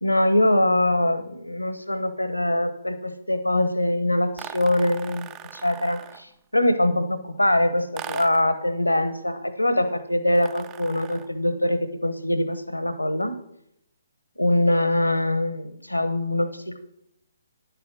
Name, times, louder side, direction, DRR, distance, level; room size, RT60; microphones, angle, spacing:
voice 1, 0.0-13.3 14.4-16.8, left 1 dB, 85° left, 11 dB, 0.8 m, -23 dB
sound 1, 4.4-6.3 8.0-8.6 10.4-11.4, right 9 dB, 20° right, 0.4 m, -39 dB
10.0 x 7.0 x 6.0 m, 0.78 s
figure-of-eight pair, 130°, 0 cm